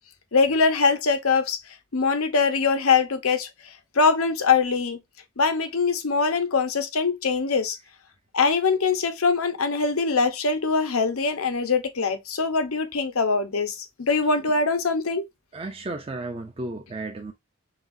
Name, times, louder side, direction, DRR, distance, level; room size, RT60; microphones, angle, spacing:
voice 1, 0.3-1.6 1.9-3.5 3.9-5.0 5.4-7.8 8.3-15.2, left 4 dB, 85° left, 0.8 m, -22 dB
voice 2, 15.5-17.3, right 2 dB, 25° right, 0.5 m, -33 dB
5.8 x 2.4 x 2.6 m
head